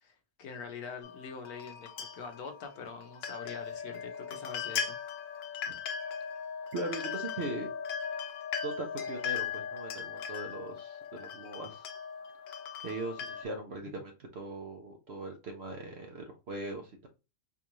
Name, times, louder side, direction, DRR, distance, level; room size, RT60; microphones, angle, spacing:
voice 1, 0.0-5.0 13.8-14.0, left 5 dB, 60° left, 1.3 m, -44 dB
sound 1, 1.0-13.4, left 7 dB, 80° left, 1.4 m, -39 dB
voice 2, 6.7-7.7 8.6-11.8 12.8-17.1, right 2 dB, 65° right, 0.6 m, -40 dB
4.7 x 2.4 x 2.9 m
omnidirectional pair, 1.9 m